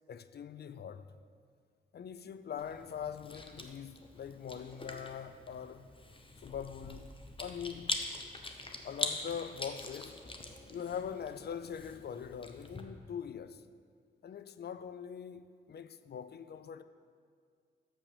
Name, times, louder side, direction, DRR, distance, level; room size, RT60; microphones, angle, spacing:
voice 1, 0.1-1.1 1.9-5.9 6.4-7.1 7.4-8.0 8.8-10.2 10.7-13.6 14.2-16.8, left 8 dB, 55° left, 0.4 m, -42 dB
Chewing mastication, 2.6-12.8, left 2 dB, 25° left, 0.9 m, -43 dB
6.8 x 6.0 x 6.8 m
cardioid pair, 60°, 20 cm